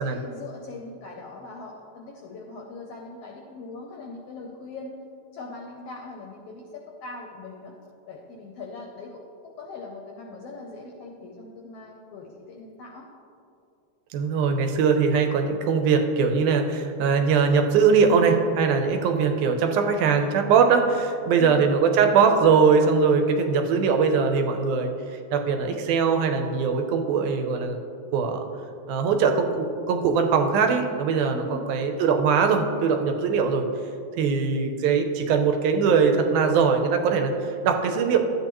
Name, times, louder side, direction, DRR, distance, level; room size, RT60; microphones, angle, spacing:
voice 1, 0.0-5.0 5.3-7.7 8.1-13.1 21.4-21.7 31.3-31.7, left 3 dB, 75° left, 0 dB, 1.4 m, -41 dB
voice 2, 14.1-27.8 28.1-28.4 28.9-33.6 34.2-38.2, right 5 dB, 85° right, 5 dB, 2.2 m, -21 dB
12.0 x 8.3 x 3.0 m, 2.6 s
omnidirectional pair, 3.4 m